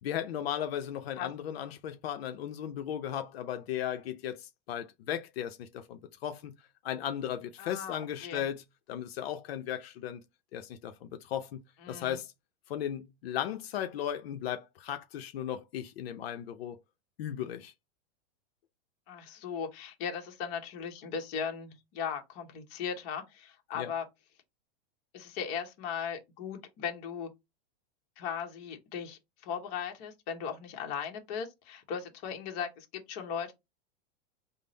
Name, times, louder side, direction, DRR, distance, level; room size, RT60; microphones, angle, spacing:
voice 1, 0.0-6.5 6.8-10.2 10.5-11.6 11.9-12.3 12.7-16.8 17.2-17.7 23.8-23.9, left 10 dB, 80° left, 0.6 m, -36 dB
voice 2, 7.6-8.4 11.8-12.2 19.1-24.0 25.1-27.3 28.2-33.5, left 7 dB, 40° left, 0.9 m, -38 dB
3.6 x 2.0 x 3.9 m
supercardioid pair, 155°, 30 cm